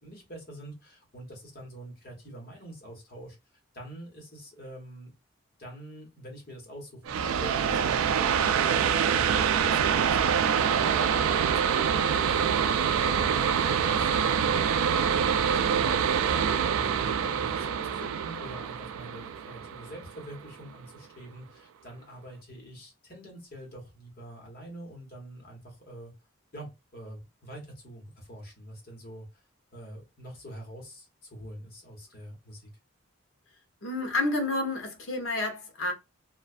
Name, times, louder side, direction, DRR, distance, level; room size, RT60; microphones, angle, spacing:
voice 1, 0.0-3.4 3.7-5.1 5.6-14.5 16.7-26.1 26.5-29.3 29.7-32.7, right 1 dB, 45° left, 1.2 m, -45 dB
sound 1, 7.1-20.4, right 7 dB, 80° right, 0.3 m, -25 dB
voice 2, 33.8-35.9, left 2 dB, 75° left, 0.8 m, -29 dB
2.4 x 2.3 x 2.4 m
head